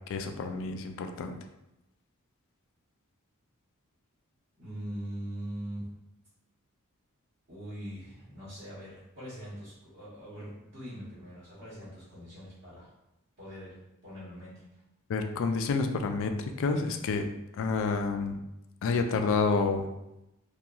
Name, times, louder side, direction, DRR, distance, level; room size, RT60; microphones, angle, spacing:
voice 1, 0.1-1.4 15.1-17.3 17.6-18.4 18.8-19.9, left 4 dB, 65° left, 7 dB, 0.3 m, -29 dB
voice 2, 4.6-5.9 7.5-12.9 13.4-14.6, equal, 50° right, -10 dB, 1.1 m, -42 dB
2.8 x 2.3 x 2.4 m, 0.90 s
head